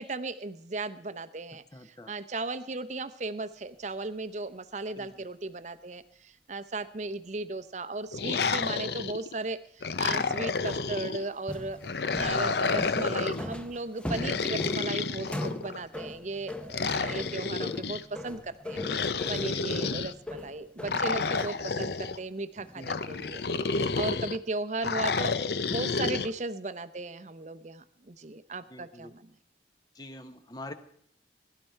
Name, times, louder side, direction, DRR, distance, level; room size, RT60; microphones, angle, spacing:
voice 1, 0.0-11.8 12.2-18.8 19.3-25.3 25.7-29.3, right 3 dB, 40° right, 12 dB, 0.7 m, -36 dB
voice 2, 1.7-2.1 5.0-5.1 10.0-10.4 17.1-17.3 19.5-19.7 22.8-23.0 24.1-24.3 26.0-26.2 28.7-29.1 29.9-30.7, left 1 dB, 20° left, 9 dB, 1.1 m, -45 dB
sound 1, 8.1-9.3 9.8-11.2 11.8-13.5 14.1-15.8 16.7-18.0 18.7-20.1 20.9-22.2 22.8-24.4 24.8-26.3, left 4 dB, 65° left, 0.7 m, -30 dB
sound 2, 10.1-21.7 21.9-22.2 22.6-22.9 23.1-23.3, left 1 dB, 5° left, 0.7 m, -41 dB
21.5 x 12.5 x 4.5 m, 0.65 s
head